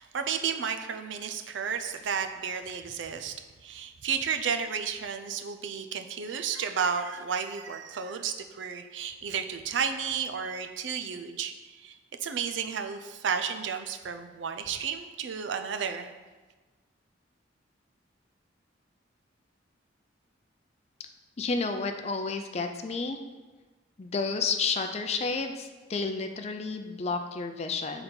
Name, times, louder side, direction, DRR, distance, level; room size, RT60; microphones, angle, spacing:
voice 1, 0.0-16.1, right 6 dB, 70° right, 7 dB, 0.5 m, -32 dB
voice 2, 21.4-23.2 24.0-28.0, left 4 dB, 35° left, 6 dB, 0.4 m, -31 dB
6.7 x 3.9 x 4.4 m, 1.3 s
head